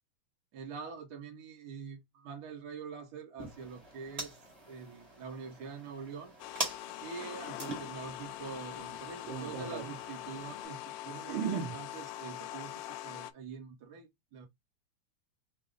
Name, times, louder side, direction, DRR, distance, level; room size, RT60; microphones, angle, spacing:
voice 1, 0.5-4.4 4.7-6.3 7.0-11.4 11.7-14.5, right 5 dB, 60° right, 1.0 m, -45 dB
sound 1, 3.4-10.6, right 2 dB, 25° right, 0.9 m, -44 dB
sound 2, 6.4-13.3, left 13 dB, 85° left, 2.1 m, -43 dB
voice 2, 9.3-9.9 11.3-11.7, right 7 dB, 85° right, 1.1 m, -35 dB
5.3 x 2.0 x 3.9 m
omnidirectional pair, 3.6 m